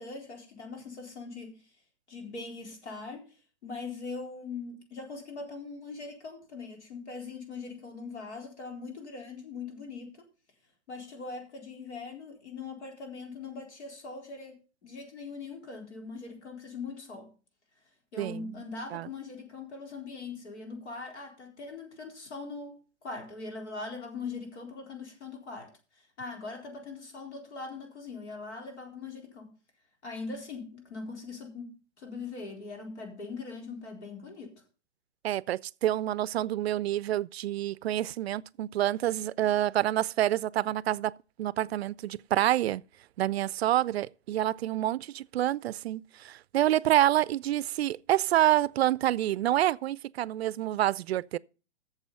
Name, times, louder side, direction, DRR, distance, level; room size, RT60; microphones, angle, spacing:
voice 1, 0.0-1.6 2.1-3.2 3.6-10.2 10.9-14.6 14.8-17.3 18.1-25.7 26.2-29.5 30.0-34.5, left 4 dB, 75° left, 4.1 m, -41 dB
voice 2, 18.2-18.5 18.9-19.1 35.2-41.1 41.4-42.8 43.2-51.4, right 13 dB, 65° right, 0.5 m, -27 dB
8.1 x 7.1 x 6.9 m
hypercardioid pair, 125°, 34 cm